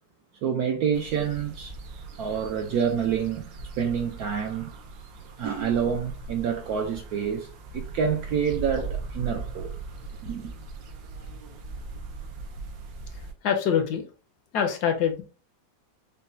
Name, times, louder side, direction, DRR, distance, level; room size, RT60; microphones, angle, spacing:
voice 1, 0.4-1.7 2.2-3.5 3.8-4.7 5.4-7.5 7.7-9.7 10.2-10.5, right 7 dB, 75° right, 0.9 m, -27 dB
sound 1, 0.9-13.3, right 3 dB, 90° right, 1.4 m, -39 dB
voice 2, 13.4-14.0 14.5-15.2, left 8 dB, 70° left, 1.1 m, -24 dB
5.2 x 2.1 x 2.6 m
omnidirectional pair, 2.0 m